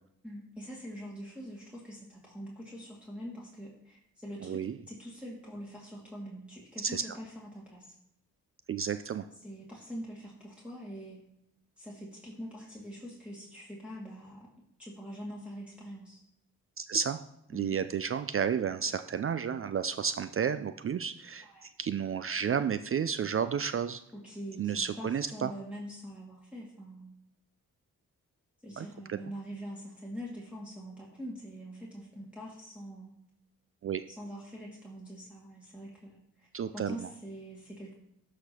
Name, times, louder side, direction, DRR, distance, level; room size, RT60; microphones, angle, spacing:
voice 1, 0.2-4.6 4.9-8.0 9.4-11.2 11.8-14.5 14.8-16.2 17.5-17.7 21.4-21.7 24.1-27.1 28.6-33.1 34.1-36.5 36.7-37.9, equal, 5° right, -5 dB, 2.0 m, -44 dB
voice 2, 4.4-4.8 6.8-7.0 8.7-9.2 16.8-17.2 17.5-24.0 24.6-25.5 28.8-29.2 33.8-34.0 36.5-37.1, right 7 dB, 40° right, 11 dB, 0.4 m, -32 dB
12.0 x 5.0 x 2.9 m, 0.79 s
supercardioid pair, 40°, 36 cm